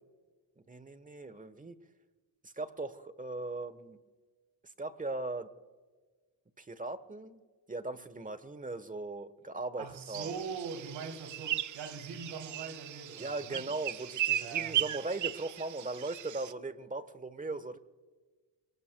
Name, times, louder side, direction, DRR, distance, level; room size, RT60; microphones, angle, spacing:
voice 1, 0.6-1.8 2.4-4.0 4.8-5.5 6.6-7.4 7.7-10.3 13.2-17.8, right 2 dB, 20° right, 1.2 m, -39 dB
voice 2, 9.8-13.6 14.4-14.8, right 5 dB, 85° right, 3.4 m, -42 dB
sound 1, 10.1-16.5, right 12 dB, 45° right, 0.5 m, -36 dB
27.5 x 19.5 x 2.3 m
cardioid pair, 95°, 44 cm